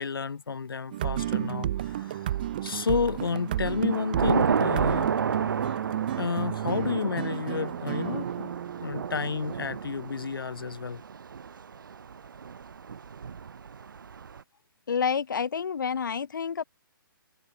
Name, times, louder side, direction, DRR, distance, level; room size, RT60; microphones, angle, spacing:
voice 1, 0.0-2.4 2.6-5.1 6.2-8.5 8.8-11.0, left 5 dB, 80° left, 3.5 m, -31 dB
sound 1, 0.9-10.3, right 12 dB, 25° right, 0.6 m, -33 dB
Thunder / Rain, 2.3-2.9 3.3-14.4, right 6 dB, 65° right, 2.1 m, -32 dB
voice 2, 14.9-16.6, left 6 dB, 60° left, 3.4 m, -28 dB
hypercardioid pair, 175°, 12 cm